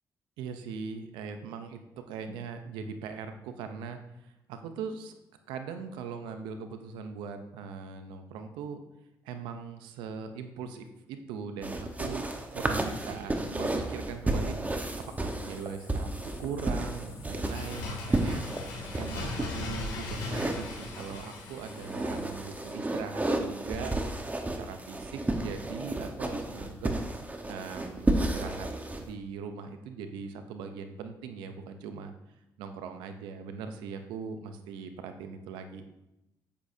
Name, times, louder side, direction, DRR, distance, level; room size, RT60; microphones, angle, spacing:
voice 1, 0.4-5.1 5.5-8.8 9.2-16.1 16.4-18.4 19.0-24.0 24.5-26.9 27.5-28.7 29.0-32.1 32.6-35.8, right 6 dB, 90° right, 8 dB, 0.7 m, -40 dB
sound 1, 11.6-19.5 20.1-21.2 21.6-29.0, right 2 dB, 20° right, 1.2 m, -32 dB
sound 2, 14.8-22.7, left 4 dB, 60° left, 1.8 m, -54 dB
Bird, 17.2-22.8 23.1-23.2, left 2 dB, 85° left, 2.4 m, -39 dB
8.4 x 8.3 x 2.8 m, 0.89 s
supercardioid pair, 60°, 8 cm